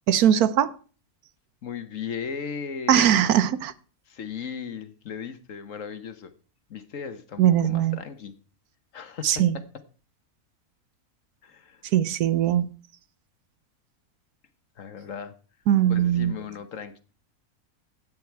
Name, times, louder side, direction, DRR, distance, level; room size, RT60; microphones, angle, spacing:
voice 1, 0.1-0.7 2.9-3.7 7.4-8.0 9.2-9.5 11.9-12.7 15.7-16.3, right 10 dB, 80° right, 1.2 m, -20 dB
voice 2, 1.6-3.3 4.1-6.3 6.7-8.3 8.9-9.6 11.4-11.8 14.8-15.3 15.9-17.0, left 6 dB, 60° left, 1.4 m, -37 dB
12.5 x 8.9 x 4.6 m
omnidirectional pair, 1.6 m